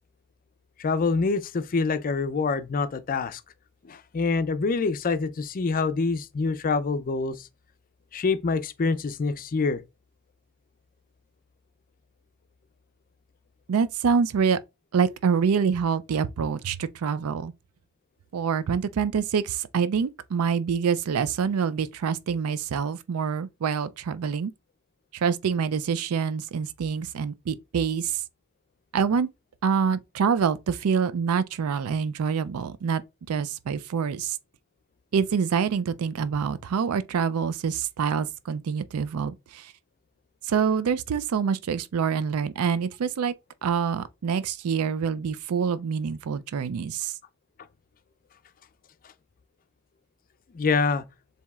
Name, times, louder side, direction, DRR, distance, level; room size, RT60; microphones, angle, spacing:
voice 1, 0.8-3.4 3.8-7.5 8.1-9.8 50.5-51.0, left 4 dB, 40° left, 0.4 m, -26 dB
voice 2, 13.7-14.6 14.9-17.5 18.3-24.5 25.1-28.2 28.9-29.3 29.6-33.0 33.3-34.4 35.1-39.7 40.4-43.3 43.6-47.1, right 6 dB, 75° right, 0.4 m, -26 dB
7.1 x 2.8 x 2.3 m
head